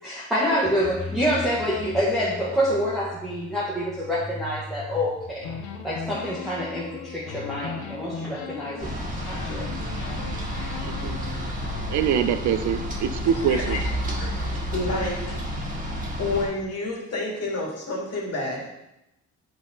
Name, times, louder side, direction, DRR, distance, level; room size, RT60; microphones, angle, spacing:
voice 1, 0.0-5.5 5.8-9.7, equal, ahead, -8 dB, 1.5 m, -27 dB
sound 1, 0.6-9.5, left 3 dB, 25° left, 1.7 m, -41 dB
sound 2, 5.4-9.0 9.2-12.0, left 6 dB, 75° left, 0.7 m, -38 dB
sound 3, 8.8-16.5, equal, 25° right, 1.8 m, -30 dB
voice 2, 10.8-11.2 11.9-13.8, right 8 dB, 70° right, 11 dB, 0.6 m, -24 dB
voice 3, 13.3-13.8 14.2-15.4 16.2-18.7, left 2 dB, 55° left, -3 dB, 2.6 m, -29 dB
8.1 x 4.1 x 4.0 m, 0.88 s
cardioid pair, 90°, 30 cm